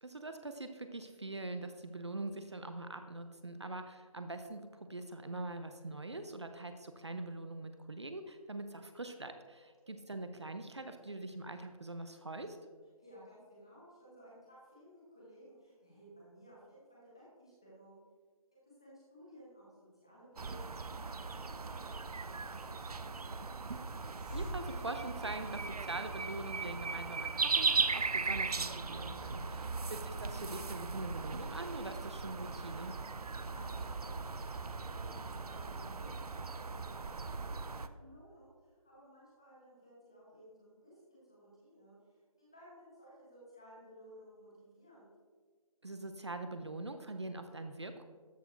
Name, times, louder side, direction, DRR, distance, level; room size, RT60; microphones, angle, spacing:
voice 1, 0.0-12.6 24.3-33.0 45.8-48.0, right 2 dB, 50° right, 8 dB, 0.6 m, -43 dB
voice 2, 13.0-18.0 18.6-23.4 33.3-45.1, equal, 10° left, -7 dB, 0.9 m, -58 dB
sound 1, 20.4-37.9, right 4 dB, 90° right, 0.6 m, -38 dB
Hiss, 22.4-25.8, right 1 dB, 15° right, 1.3 m, -49 dB
13.0 x 4.4 x 4.4 m, 1.5 s
figure-of-eight pair, 180°, 19 cm